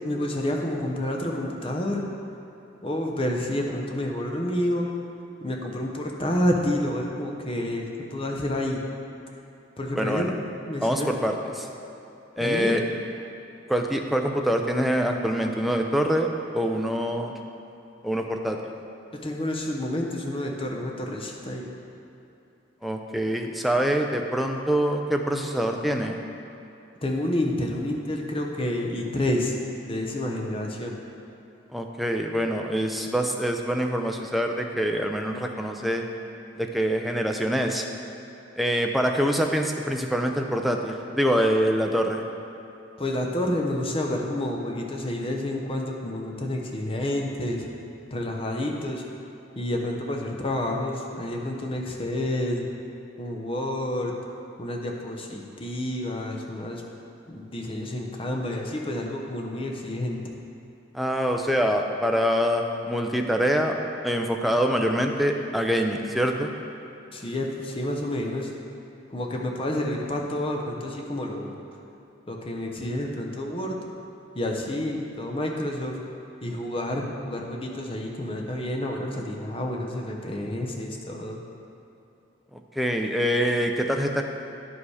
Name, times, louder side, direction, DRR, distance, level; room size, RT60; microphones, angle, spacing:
voice 1, 0.0-2.1 2.8-4.9 5.4-8.8 9.8-10.3 10.6-11.1 12.4-12.8 19.1-21.7 27.0-29.6 29.8-31.0 43.0-47.7 48.1-49.0 49.6-52.7 53.2-54.2 54.6-56.8 57.3-60.3 67.1-68.5 69.1-71.5 72.3-73.8 74.3-76.0 76.4-81.4, left 1 dB, 30° left, 1 dB, 0.8 m, -29 dB
voice 2, 10.0-10.3 10.8-11.7 12.4-12.8 13.7-17.4 18.0-18.7 22.8-26.2 31.7-36.1 36.6-37.9 38.6-42.2 60.9-63.7 64.0-66.5 82.5-84.2, equal, ahead, 2 dB, 0.5 m, -25 dB
10.0 x 5.3 x 4.8 m, 2.8 s
head